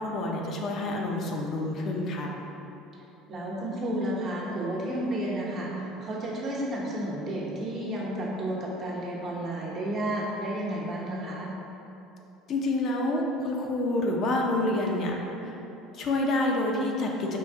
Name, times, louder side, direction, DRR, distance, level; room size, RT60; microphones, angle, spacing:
voice 1, 0.0-2.3 12.5-15.1 15.4-15.6 15.9-17.4, left 2 dB, 50° left, 0 dB, 0.5 m, -28 dB
voice 2, 3.3-11.5, right 1 dB, 45° right, -4 dB, 0.9 m, -32 dB
4.6 x 2.5 x 3.6 m, 3.0 s
supercardioid pair, 105°, 0 cm